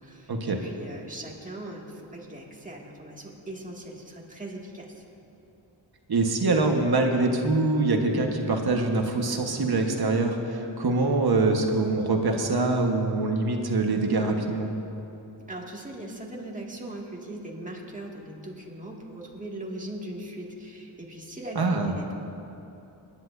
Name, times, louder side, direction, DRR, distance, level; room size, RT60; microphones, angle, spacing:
voice 1, 0.0-5.0 15.5-22.1, right 1 dB, 15° right, -2 dB, 2.2 m, -40 dB
voice 2, 6.1-14.7 21.5-21.9, right 3 dB, 55° right, 2 dB, 1.5 m, -24 dB
24.5 x 10.5 x 2.7 m, 3.0 s
cardioid pair, 80°, 45 cm